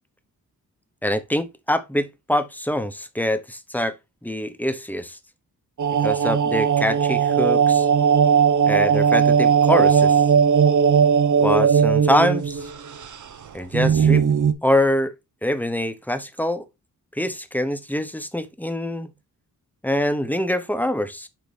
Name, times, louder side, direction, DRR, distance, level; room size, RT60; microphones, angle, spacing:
voice 1, 1.0-3.9 4.2-5.2 6.0-7.9 8.6-10.2 11.4-12.7 13.5-14.2 14.6-15.1 15.4-16.6 17.2-19.1 19.8-21.3, left 1 dB, 5° left, 0.9 m, -24 dB
sound 1, 5.8-12.7 13.0-13.1 13.7-14.5, right 7 dB, 60° right, 0.8 m, -18 dB
6.6 x 4.5 x 3.4 m
cardioid pair, 70°, 34 cm